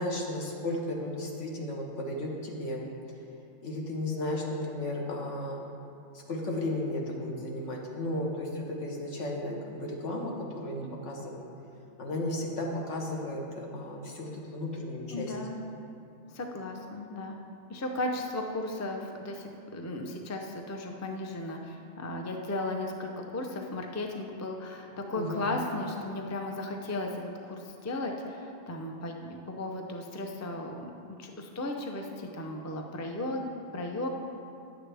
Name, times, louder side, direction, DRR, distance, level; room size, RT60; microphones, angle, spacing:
voice 1, 0.0-2.8 3.6-5.6 6.3-11.4 12.0-15.3 25.2-25.5, left 1 dB, 80° left, -1 dB, 1.5 m, -34 dB
voice 2, 15.1-15.6 16.3-17.4 17.7-30.9 31.2-34.1, left 2 dB, 20° left, 3 dB, 0.4 m, -35 dB
10.5 x 7.9 x 3.4 m, 2.6 s
omnidirectional pair, 1.2 m